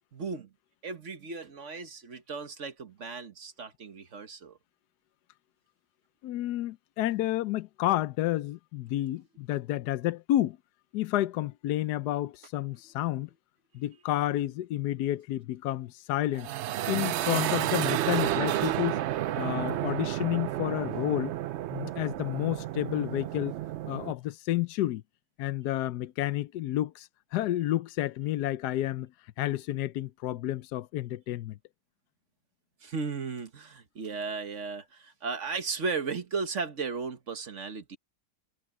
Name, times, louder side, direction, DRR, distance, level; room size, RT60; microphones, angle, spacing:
voice 1, 0.1-0.5 0.8-4.6 19.3-19.5 32.8-38.0, right 4 dB, 50° right, 1.5 m, -35 dB
voice 2, 6.2-10.6 10.9-13.3 13.7-16.5 16.9-19.0 19.3-21.3 21.7-23.5 23.9-25.0 25.4-29.1 29.4-31.6, left 14 dB, 80° left, 1.2 m, -30 dB
sound 1, 16.3-24.1, right 13 dB, 80° right, 0.6 m, -31 dB
omnidirectional pair, 1.7 m